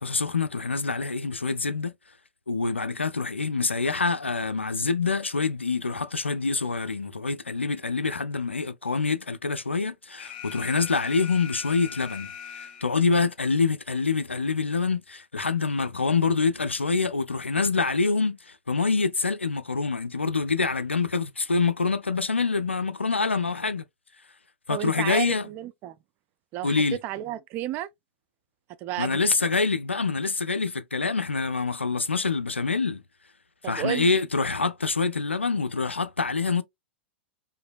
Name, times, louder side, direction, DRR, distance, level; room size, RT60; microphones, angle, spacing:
voice 1, 0.0-1.9 2.5-12.3 12.8-18.4 18.7-23.8 24.7-25.4 26.6-27.0 29.0-33.0 33.6-36.6, left 4 dB, 80° left, 0.4 m, -26 dB
Alarm, 10.2-13.2, left 8 dB, 45° left, 1.0 m, -41 dB
voice 2, 24.7-26.0 26.5-27.9 28.8-29.2 33.6-34.1, right 13 dB, 30° right, 0.4 m, -32 dB
4.8 x 2.6 x 2.3 m
figure-of-eight pair, 100°, 6 cm